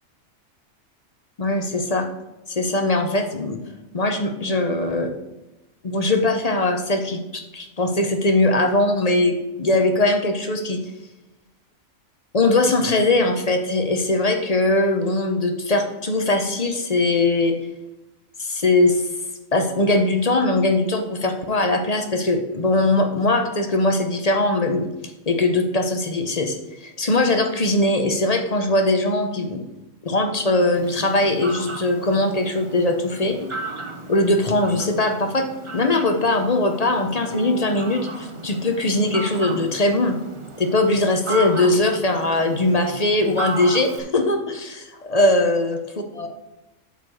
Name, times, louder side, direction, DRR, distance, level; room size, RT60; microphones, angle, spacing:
voice 1, 1.4-2.1 2.5-3.6 3.9-5.2 5.8-10.8 12.3-17.6 18.4-19.0 19.5-24.9 25.3-29.6 30.0-33.4 34.1-40.2 40.6-45.8 46.1-46.3, left 2 dB, 35° left, 5 dB, 0.7 m, -21 dB
Fowl, 30.7-44.0, right 2 dB, 25° right, 0.7 m, -35 dB
Bowed string instrument, 37.3-40.6, equal, 5° left, 3.3 m, -41 dB
7.7 x 5.1 x 6.4 m, 1.0 s
omnidirectional pair, 1.5 m